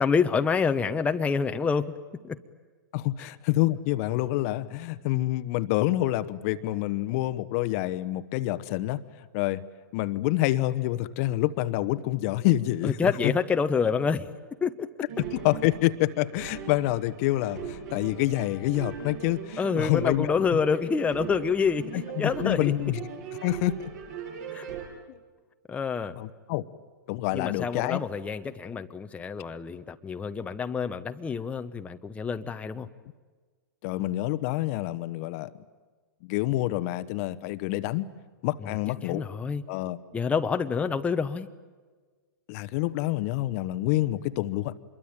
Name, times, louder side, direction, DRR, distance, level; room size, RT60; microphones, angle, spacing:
voice 1, 0.0-2.0 2.2-2.4 12.8-14.3 14.6-14.9 19.6-22.7 24.5-24.6 25.7-26.1 27.3-32.9 39.0-39.6 40.1-41.5, left 5 dB, 10° left, 7 dB, 1.0 m, -27 dB
voice 2, 2.9-9.0 9.3-9.6 9.9-13.3 15.3-20.4 21.9-23.0 23.4-23.9 25.1-25.2 26.2-26.6 27.1-28.0 33.8-35.5 36.2-38.0 38.4-39.3 39.7-40.0 42.5-44.8, left 16 dB, 45° left, 13 dB, 1.1 m, -27 dB
sound 1, 15.1-24.9, right 7 dB, 55° right, 7.6 m, -39 dB
26.0 x 22.5 x 9.0 m, 1.4 s
hypercardioid pair, 120°, 11 cm